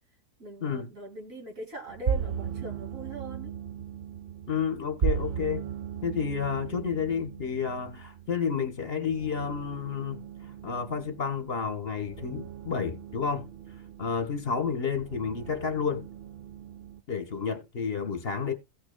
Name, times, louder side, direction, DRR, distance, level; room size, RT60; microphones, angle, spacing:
voice 1, 0.4-3.5, right 2 dB, 55° right, 3.0 m, -40 dB
sound 1, 1.9-17.0, right 7 dB, 75° right, 0.5 m, -37 dB
voice 2, 4.5-5.6 6.0-10.2 10.6-13.5 14.0-16.1 17.1-18.5, left 6 dB, 40° left, 1.6 m, -30 dB
17.0 x 6.0 x 2.3 m
omnidirectional pair, 1.7 m